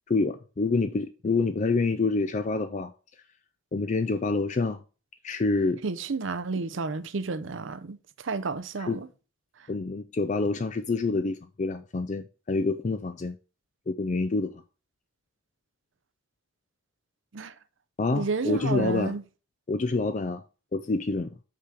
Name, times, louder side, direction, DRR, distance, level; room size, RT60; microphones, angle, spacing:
voice 1, 0.1-2.9 3.7-4.8 5.2-5.8 8.8-9.0 9.7-13.4 13.9-14.6 18.0-19.1 19.7-20.4 20.7-21.4, left 3 dB, 35° left, 0.4 m, -27 dB
voice 2, 5.8-8.0 8.2-9.1 17.3-17.5 18.1-19.2, right 4 dB, 65° right, 0.6 m, -31 dB
5.8 x 5.0 x 6.1 m
head